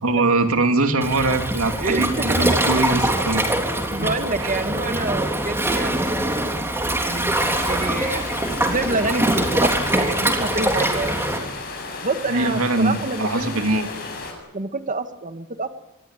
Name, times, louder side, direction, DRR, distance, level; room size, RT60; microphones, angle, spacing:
voice 1, 0.0-3.4 4.0-4.1 4.4-4.6 12.3-13.9, right 2 dB, 70° right, 6 dB, 2.8 m, -22 dB
Waves surf, 1.0-11.4, right 1 dB, 10° right, 3.6 m, -23 dB
voice 2, 3.9-6.3 7.0-8.3 8.6-11.2 12.0-13.5 14.5-15.7, right 3 dB, 35° right, 9 dB, 1.7 m, -27 dB
sound 1, 7.3-14.3, left 3 dB, 45° left, 7.8 m, -34 dB
25.0 x 21.0 x 9.1 m, 0.94 s
head